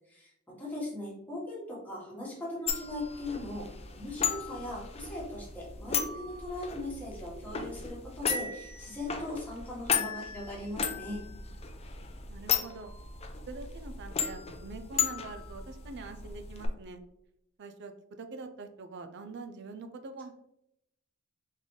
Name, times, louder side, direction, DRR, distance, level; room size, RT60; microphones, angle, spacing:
voice 1, 0.1-3.7 3.9-11.2, left 1 dB, 10° left, -5 dB, 1.4 m, -39 dB
sound 1, 2.7-16.7, left 7 dB, 30° left, 0.5 m, -35 dB
voice 2, 12.3-12.9 13.5-17.0 17.6-20.3, right 3 dB, 55° right, 8 dB, 0.5 m, -44 dB
3.9 x 3.7 x 3.1 m, 0.80 s
head